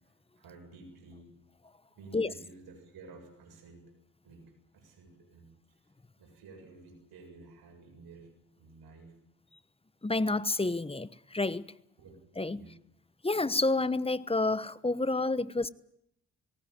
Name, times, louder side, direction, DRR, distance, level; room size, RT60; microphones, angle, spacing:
voice 1, 0.4-1.3 2.0-3.9 4.2-5.5 6.2-8.3 8.6-9.1 12.0-12.1 12.5-12.7, right 3 dB, 70° right, 7.7 m, -52 dB
voice 2, 10.0-11.7 12.4-12.6 13.2-15.7, left 2 dB, 15° left, 1.1 m, -29 dB
19.0 x 19.0 x 9.6 m
hypercardioid pair, 40°, 37 cm